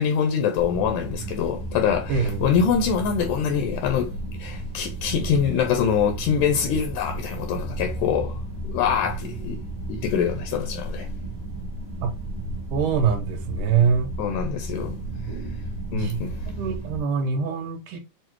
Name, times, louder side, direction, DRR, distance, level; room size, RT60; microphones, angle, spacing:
voice 1, 0.0-4.1 4.4-8.4 8.6-9.6 9.9-11.1 14.2-15.0 15.9-16.4, left 7 dB, 80° left, 2.0 m, -24 dB
sound 1, 0.6-17.0, right 2 dB, 40° right, 0.9 m, -33 dB
voice 2, 2.1-2.5 12.0-12.1 12.7-14.1 15.9-18.0, right 6 dB, 75° right, 2.4 m, -24 dB
6.6 x 2.4 x 3.0 m
omnidirectional pair, 3.8 m